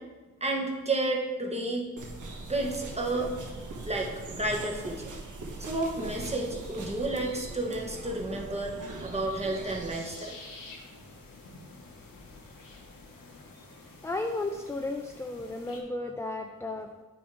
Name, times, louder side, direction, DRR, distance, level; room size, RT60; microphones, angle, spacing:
voice 1, 0.4-1.9 2.5-3.3 3.8-5.1 5.6-8.7 9.0-10.4, right 2 dB, 20° right, 0 dB, 1.1 m, -31 dB
sound 1, 2.0-10.0, right 2 dB, 65° right, 1.2 m, -41 dB
sound 2, 9.9-15.8, left 3 dB, 80° left, 1.2 m, -49 dB
voice 2, 14.0-17.0, left 2 dB, 10° left, 4 dB, 0.4 m, -34 dB
8.6 x 3.7 x 4.7 m, 1.3 s
wide cardioid pair, 90°, 33 cm